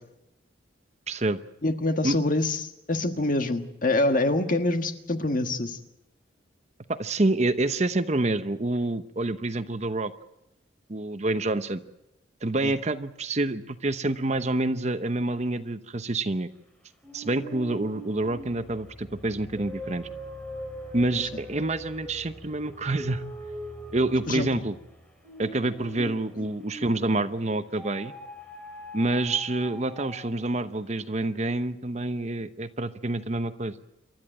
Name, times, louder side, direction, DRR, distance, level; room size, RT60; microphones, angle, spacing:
voice 1, 1.1-1.4 2.0-2.2 6.9-10.1 10.9-11.8 12.4-16.5 17.1-20.1 20.9-23.2 23.9-24.8 25.4-28.1 28.9-33.7, right 2 dB, 35° right, 11 dB, 0.9 m, -27 dB
voice 2, 1.6-5.8 12.6-12.7 24.3-24.5 26.0-26.2, left 2 dB, 45° left, 7 dB, 1.6 m, -25 dB
sound 1, 17.0-27.2 27.8-30.5, equal, 5° left, 3.3 m, -42 dB
28.5 x 13.0 x 9.0 m, 0.89 s
head